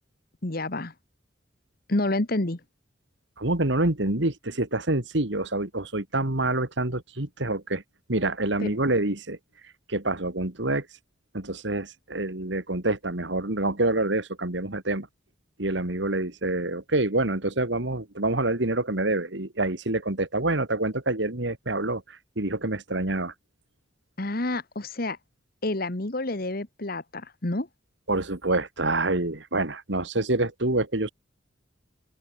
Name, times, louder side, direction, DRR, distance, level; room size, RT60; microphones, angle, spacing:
voice 1, 0.4-0.9 1.9-2.6 8.6-8.7 24.2-25.2 25.6-27.7, left 2 dB, 50° left, 1.5 m, -29 dB
voice 2, 3.4-7.8 8.1-9.4 9.9-10.9 11.3-15.1 15.6-23.3 28.1-31.1, right 2 dB, 65° right, 2.3 m, -27 dB
open air
head